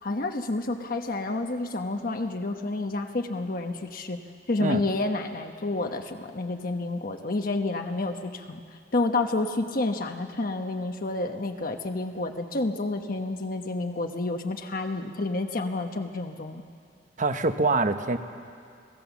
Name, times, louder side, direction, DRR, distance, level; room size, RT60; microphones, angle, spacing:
voice 1, 0.0-4.2 4.5-8.6 8.9-16.6, left 2 dB, 50° left, 5 dB, 1.0 m, -29 dB
voice 2, 17.2-18.2, right 3 dB, 45° right, 9 dB, 1.0 m, -24 dB
29.5 x 18.0 x 7.1 m, 2.3 s
head